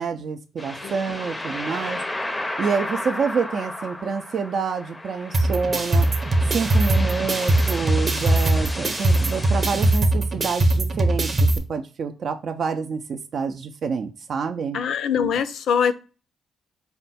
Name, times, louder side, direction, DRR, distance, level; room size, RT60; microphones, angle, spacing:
voice 1, 0.0-2.0 2.6-6.1 6.5-14.8, right 5 dB, 55° right, 6 dB, 0.4 m, -27 dB
sound 1, 0.6-10.0, left 1 dB, 15° left, 0.5 m, -33 dB
sound 2, 5.3-11.6, right 2 dB, 35° right, 0.8 m, -21 dB
voice 2, 14.7-15.9, left 7 dB, 70° left, 13 dB, 0.4 m, -22 dB
4.3 x 2.2 x 4.1 m, 0.32 s
cardioid pair, 90°, 0 cm